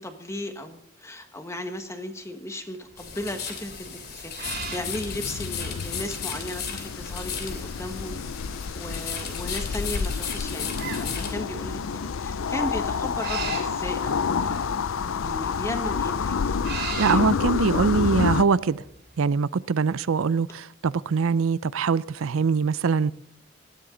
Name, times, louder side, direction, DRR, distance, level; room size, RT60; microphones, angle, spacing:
voice 1, 0.0-8.2 8.7-16.5, left 1 dB, 15° left, 1.4 m, -36 dB
sound 1, 2.9-19.1, right 6 dB, 50° right, 3.0 m, -40 dB
sound 2, 3.0-11.3, left 6 dB, 50° left, 2.9 m, -36 dB
sound 3, 4.5-18.4, left 5 dB, 80° left, 0.5 m, -29 dB
voice 2, 17.0-18.8 19.2-23.1, right 5 dB, 85° right, 0.5 m, -23 dB
19.5 x 13.5 x 3.9 m
head